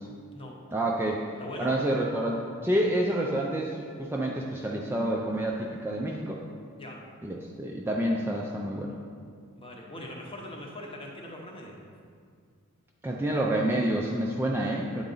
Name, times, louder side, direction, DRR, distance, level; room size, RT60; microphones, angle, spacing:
voice 1, 0.7-1.2 1.6-6.4 7.2-8.9 13.0-15.0, right 1 dB, 10° right, -2 dB, 0.3 m, -28 dB
voice 2, 1.4-1.7 6.8-7.0 9.5-11.8, left 1 dB, 25° left, 0 dB, 0.7 m, -41 dB
8.3 x 3.9 x 3.8 m, 2.2 s
head